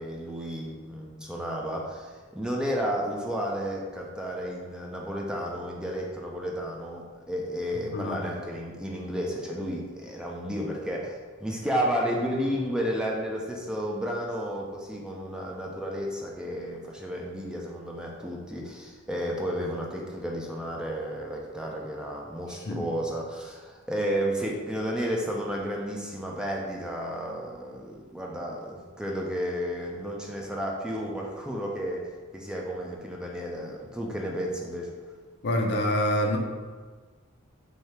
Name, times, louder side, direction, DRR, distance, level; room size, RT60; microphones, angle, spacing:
voice 1, 0.0-32.1 32.3-34.9, equal, 5° right, -2 dB, 0.4 m, -32 dB
voice 2, 7.9-8.3 22.6-22.9 35.4-36.4, left 1 dB, 55° left, 2 dB, 0.5 m, -26 dB
3.3 x 2.7 x 4.3 m, 1.4 s
head